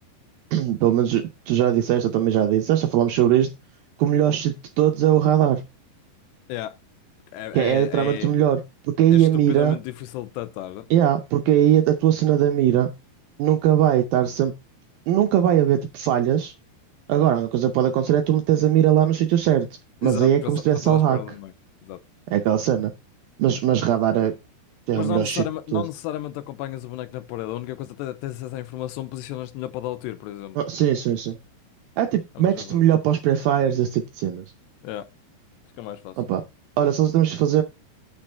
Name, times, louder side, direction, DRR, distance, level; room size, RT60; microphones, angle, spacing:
voice 1, 0.5-3.5 4.0-5.6 7.5-8.6 8.9-9.8 10.9-12.9 13.4-14.5 15.1-16.5 17.1-19.7 20.0-21.2 22.3-22.9 23.4-24.3 24.9-25.4 25.7-25.8 30.6-31.4 32.0-34.4 36.2-36.4 36.8-37.6, right 11 dB, 80° right, 2.1 m, -20 dB
voice 2, 7.3-8.3 9.1-10.9 20.0-21.5 21.8-22.0 24.9-30.6 32.4-32.8 34.8-35.0 35.8-36.2, left 14 dB, 85° left, 2.8 m, -33 dB
8.8 x 6.4 x 4.3 m
omnidirectional pair, 5.0 m